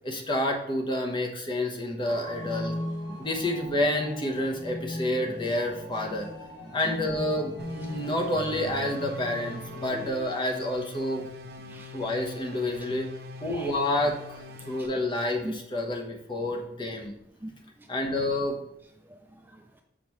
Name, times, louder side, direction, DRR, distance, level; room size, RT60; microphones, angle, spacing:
voice 1, 0.0-2.7 3.2-6.3 6.7-11.3 11.9-13.1 13.4-17.1 17.9-18.6, left 1 dB, 30° left, 1 dB, 1.0 m, -29 dB
sound 1, 2.0-10.1, equal, 90° left, 1.6 m, -38 dB
sound 2, 7.6-14.9, left 2 dB, 60° right, 0.6 m, -44 dB
voice 2, 11.6-12.0 13.4-13.7 14.6-14.9 15.4-15.6 15.9-16.0 17.4-17.9 19.0-19.8, right 1 dB, 10° right, 3 dB, 0.5 m, -42 dB
7.2 x 5.0 x 3.1 m, 0.81 s
head